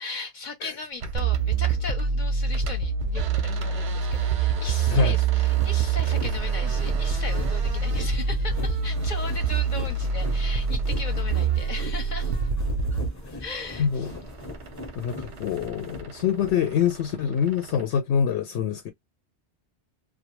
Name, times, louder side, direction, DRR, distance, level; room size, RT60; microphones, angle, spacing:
voice 1, 0.0-12.4 13.4-14.1, left 3 dB, 50° left, 0.8 m, -37 dB
sound 1, 1.0-2.1 2.4-12.7 13.1-17.9, right 6 dB, 90° right, 0.9 m, -43 dB
sound 2, 1.1-13.1, right 5 dB, 55° right, 0.5 m, -25 dB
sound 3, 5.2-16.5, left 1 dB, 20° left, 0.7 m, -39 dB
voice 2, 13.8-14.1 15.0-18.9, left 7 dB, 80° left, 0.8 m, -25 dB
2.3 x 2.2 x 2.9 m
omnidirectional pair, 1.1 m